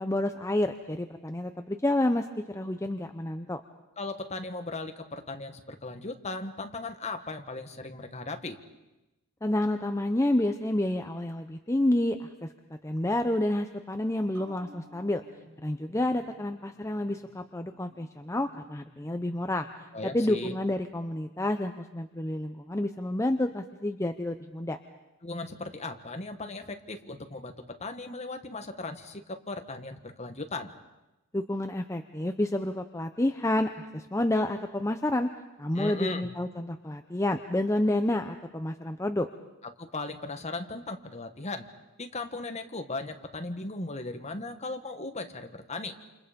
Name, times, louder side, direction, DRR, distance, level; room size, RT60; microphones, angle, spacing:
voice 1, 0.0-3.6 9.4-12.5 12.8-15.2 15.6-19.7 20.1-24.8 31.3-35.3 35.6-39.3, left 1 dB, 15° left, 7 dB, 0.8 m, -29 dB
voice 2, 4.0-8.6 19.9-20.6 25.2-30.7 35.7-36.3 39.8-41.7 42.0-45.9, left 2 dB, 30° left, 6 dB, 1.7 m, -37 dB
sound 1, 14.3-21.2 21.6-21.7, right 1 dB, 80° right, 6.2 m, -56 dB
28.5 x 28.5 x 5.3 m, 0.99 s
head